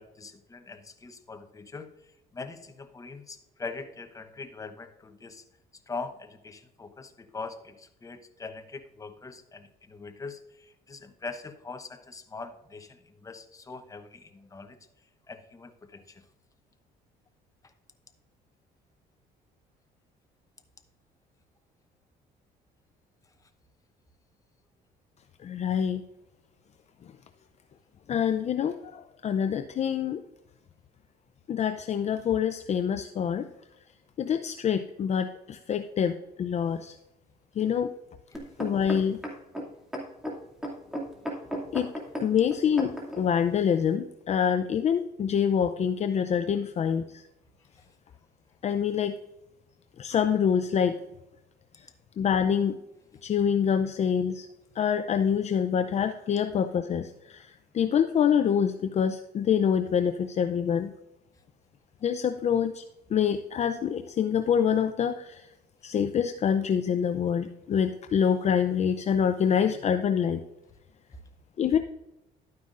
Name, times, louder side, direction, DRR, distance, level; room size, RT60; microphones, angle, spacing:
voice 1, 0.0-1.9 2.3-5.4 5.9-14.8 15.3-16.2 38.3-38.4, left 4 dB, 20° left, 8 dB, 0.9 m, -42 dB
voice 2, 25.4-26.0 28.1-30.2 31.5-33.5 34.2-36.9 37.6-37.9 38.6-39.2 41.7-41.9 42.2-47.2 48.6-49.2 50.0-51.0 51.8-51.9 52.2-52.8 53.2-54.5 54.8-60.9 62.0-62.8 63.1-65.5 65.8-70.4 71.6-71.8, left 8 dB, 40° left, 8 dB, 0.5 m, -26 dB
sound 1, 38.3-43.2 43.9-44.0, equal, 5° right, 2.3 m, -35 dB
12.0 x 9.4 x 2.5 m, 0.90 s
cardioid pair, 110°, 17 cm